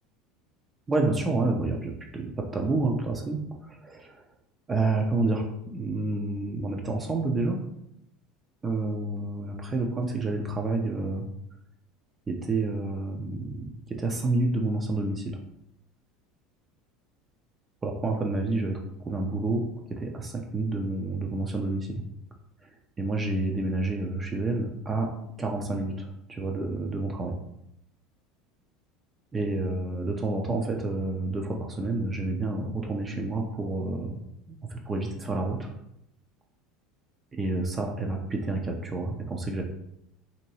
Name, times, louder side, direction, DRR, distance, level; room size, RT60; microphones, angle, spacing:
voice 1, 0.9-4.3 4.7-7.6 8.6-11.3 12.3-15.4 17.8-22.0 23.0-25.1 25.4-27.3 29.3-34.2 34.5-35.7 37.4-39.6, right 2 dB, 25° right, 1 dB, 0.5 m, -29 dB
2.9 x 2.7 x 2.8 m, 0.78 s
figure-of-eight pair, 70°, 0 cm